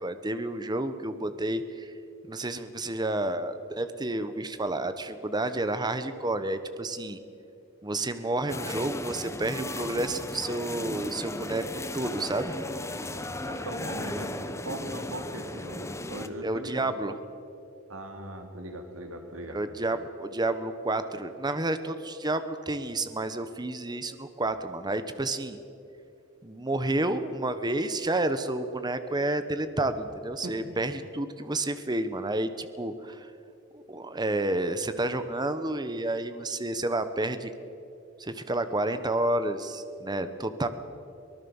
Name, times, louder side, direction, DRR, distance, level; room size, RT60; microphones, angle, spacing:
voice 1, 0.0-1.9 2.3-7.2 7.8-11.6 11.9-12.5 16.4-17.2 19.5-25.6 26.4-33.3 33.7-37.5 38.2-40.7, right 2 dB, 20° right, 10 dB, 1.1 m, -30 dB
sound 1, 8.5-16.3, left 2 dB, 15° left, 1.0 m, -36 dB
voice 2, 13.5-17.0 17.9-19.6 30.4-30.6, right 1 dB, 90° right, 5 dB, 3.0 m, -39 dB
23.5 x 19.0 x 7.2 m, 2.6 s
head